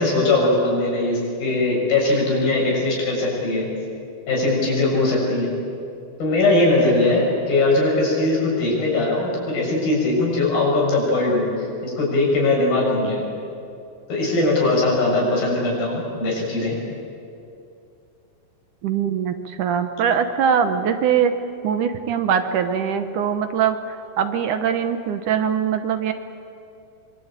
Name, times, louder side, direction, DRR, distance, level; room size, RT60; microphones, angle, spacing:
voice 1, 0.0-3.7 4.3-5.5 6.2-13.3 14.1-16.8, left 2 dB, 75° left, -2 dB, 8.9 m, -20 dB
voice 2, 18.8-21.3 21.6-26.1, right 7 dB, 70° right, 9 dB, 2.3 m, -22 dB
25.5 x 24.0 x 8.9 m, 2.6 s
omnidirectional pair, 4.2 m